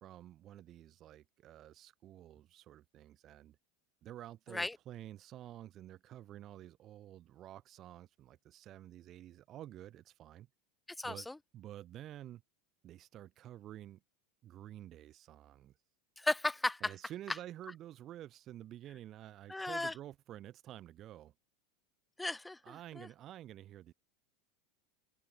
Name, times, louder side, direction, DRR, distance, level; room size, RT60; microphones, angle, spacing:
voice 1, 0.0-3.6 4.0-10.5 11.0-11.3 11.5-12.4 12.8-14.0 14.4-15.8 16.8-21.3 22.6-23.9, right 12 dB, 45° right, 2.3 m, -50 dB
voice 2, 11.0-11.4 16.2-16.9 19.5-19.9 22.2-22.6 23.0-23.1, left 2 dB, 10° left, 0.4 m, -35 dB
hypercardioid pair, 95°, 0 cm